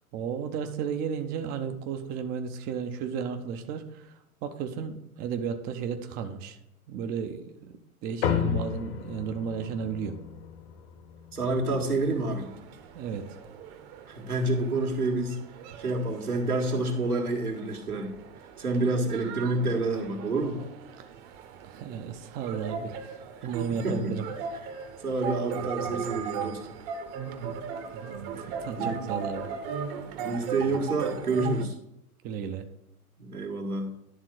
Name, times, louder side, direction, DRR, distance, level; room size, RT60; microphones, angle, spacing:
voice 1, 0.1-4.1 4.4-6.6 6.9-10.1 12.9-13.3 21.0-21.1 21.6-24.2 27.2-27.6 27.9-28.2 28.6-29.5 32.2-32.7, right 7 dB, 20° right, 7 dB, 0.5 m, -34 dB
sound 1, 8.2-13.0, left 7 dB, 45° left, 1.1 m, -33 dB
voice 2, 11.3-12.5 14.1-15.4 15.8-18.2 18.6-20.6 23.8-24.1 25.0-26.6 28.3-28.5 28.8-29.0 30.1-31.8 33.2-33.9, right 2 dB, 85° right, 1 dB, 1.8 m, -28 dB
sound 2, 11.8-31.6, right 6 dB, 40° right, 1.0 m, -38 dB
11.0 x 3.7 x 6.3 m, 0.80 s
figure-of-eight pair, 105°, 44 cm